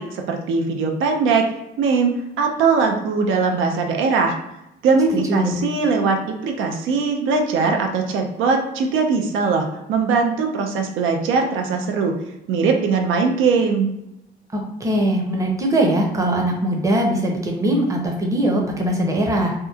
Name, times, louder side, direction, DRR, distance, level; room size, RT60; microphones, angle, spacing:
voice 1, 0.0-1.5 1.8-2.1 2.4-4.3 4.8-12.1 12.5-13.9, right 4 dB, 85° right, 3 dB, 0.5 m, -20 dB
voice 2, 5.1-5.6 14.5-19.5, right 1 dB, 15° right, 0 dB, 0.6 m, -21 dB
2.9 x 2.1 x 2.3 m, 0.87 s
cardioid pair, 90°, 20 cm